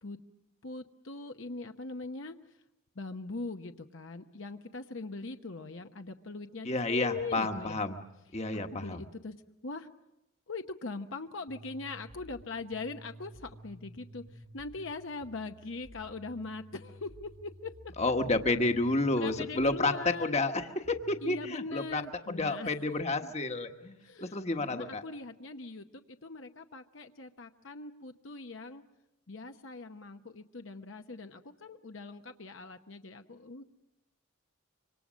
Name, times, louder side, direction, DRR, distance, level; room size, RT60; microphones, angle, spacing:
voice 1, 0.6-2.4 3.0-7.8 8.5-9.9 10.5-17.7 19.1-20.4 21.2-22.7 23.2-23.3 24.0-28.8 29.3-33.6, left 3 dB, 60° left, 6 dB, 0.9 m, -41 dB
voice 2, 6.6-8.0 8.3-9.0 18.0-19.9 20.2-20.6 21.1-22.0 22.3-25.0, left 2 dB, 30° left, 6 dB, 1.2 m, -30 dB
sound 1, 11.5-21.5, equal, 80° right, 3.6 m, -53 dB
26.0 x 25.0 x 6.3 m, 0.91 s
head